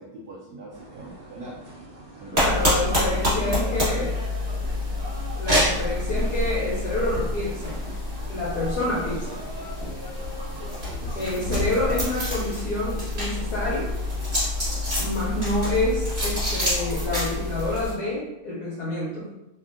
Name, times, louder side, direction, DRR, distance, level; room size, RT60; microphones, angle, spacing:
voice 1, 0.0-1.5 2.2-4.1 10.8-11.4 14.7-14.9, right 2 dB, 80° right, -4 dB, 0.9 m, -40 dB
sound 1, 0.7-17.9, right 1 dB, 55° right, 1.1 m, -41 dB
voice 2, 2.3-4.1 5.4-7.8 8.3-9.4 11.1-13.9 14.9-19.3, left 1 dB, 75° left, -7 dB, 0.9 m, -28 dB
sound 2, 2.4-17.9, left 1 dB, 30° right, 1.3 m, -27 dB
3.4 x 2.2 x 2.4 m, 0.93 s
omnidirectional pair, 2.4 m